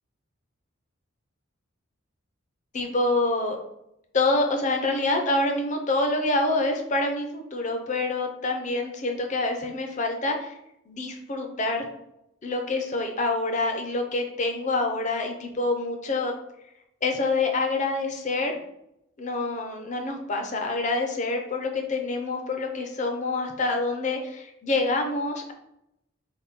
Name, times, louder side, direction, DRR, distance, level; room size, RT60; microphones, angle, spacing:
voice 1, 2.7-3.6 4.1-10.5 10.9-11.9 12.4-16.3 17.0-18.5 19.2-25.5, left 2 dB, 35° left, 3 dB, 0.5 m, -26 dB
3.5 x 2.2 x 4.0 m, 0.81 s
head